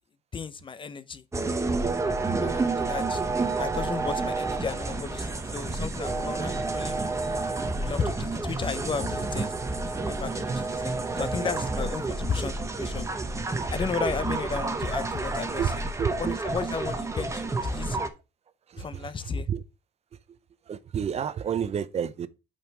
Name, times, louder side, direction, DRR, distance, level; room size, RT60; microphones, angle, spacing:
voice 1, 0.3-1.2 2.4-3.2 3.6-7.0 7.8-9.5 9.9-13.1 13.7-15.9 16.2-18.0 18.8-19.5, left 5 dB, 30° left, 0.6 m, -34 dB
sound 1, 1.3-18.1, right 3 dB, 15° right, 1.0 m, -29 dB
voice 2, 16.0-16.3 18.8-18.9 19.3-19.6 20.7-22.3, right 8 dB, 40° right, 0.6 m, -29 dB
5.8 x 5.5 x 4.6 m
cardioid pair, 110°, 17 cm